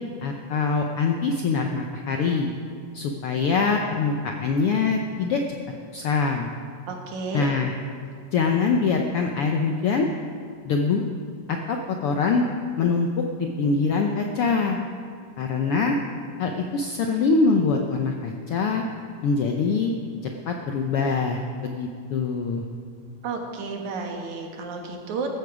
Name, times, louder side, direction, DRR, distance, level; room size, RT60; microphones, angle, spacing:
voice 1, 0.2-2.5 2.9-5.4 5.9-6.5 7.3-7.7 8.3-10.1 10.6-11.0 11.5-12.5 12.8-14.8 15.4-16.0 16.4-18.8 19.2-19.9 20.2-22.6, left 4 dB, 75° left, 3 dB, 1.3 m, -24 dB
voice 2, 6.9-7.5 23.2-25.4, right 4 dB, 70° right, 2 dB, 2.9 m, -32 dB
14.5 x 13.5 x 4.9 m, 2.3 s
omnidirectional pair, 3.5 m